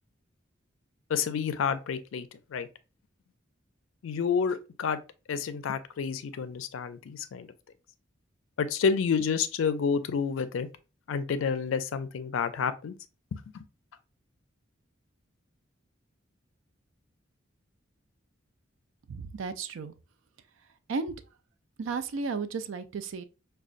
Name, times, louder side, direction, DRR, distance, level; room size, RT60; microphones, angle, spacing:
voice 1, 1.1-2.7 4.0-5.0 5.3-7.5 8.6-10.7 11.1-12.9 13.3-13.6, left 6 dB, 85° left, 0.4 m, -29 dB
voice 2, 19.1-19.9 20.9-21.1 21.8-23.2, right 4 dB, 75° right, 0.4 m, -33 dB
4.9 x 2.3 x 2.4 m
head